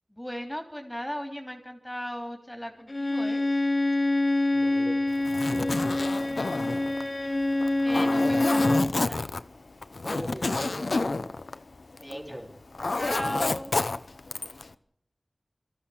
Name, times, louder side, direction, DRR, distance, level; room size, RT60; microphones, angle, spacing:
voice 1, 0.1-3.4 7.8-9.2 12.0-12.4 12.9-13.7, equal, 10° left, 4 dB, 3.2 m, -36 dB
Bowed string instrument, 2.9-9.0, left 2 dB, 45° left, 0.9 m, -26 dB
voice 2, 4.5-6.1 10.0-11.2 12.0-12.5, equal, 30° right, -1 dB, 3.8 m, -40 dB
Zipper (clothing), 5.1-12.3 12.5-14.7, left 3 dB, 85° left, 0.7 m, -30 dB
22.0 x 14.0 x 8.6 m, 0.73 s
wide cardioid pair, 50°, 0 cm